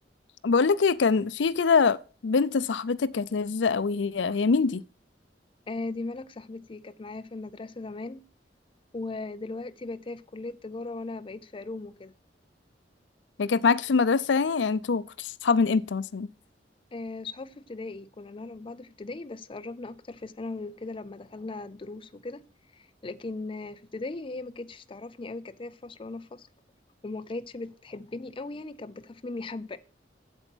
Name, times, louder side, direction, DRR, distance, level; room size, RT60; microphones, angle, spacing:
voice 1, 0.4-2.0 2.2-4.8 13.4-16.3, left 5 dB, 80° left, 0.5 m, -24 dB
voice 2, 5.7-8.2 8.9-12.1 16.9-22.4 22.7-26.5 27.0-29.8, left 3 dB, 30° left, 0.5 m, -38 dB
8.1 x 8.0 x 6.1 m
head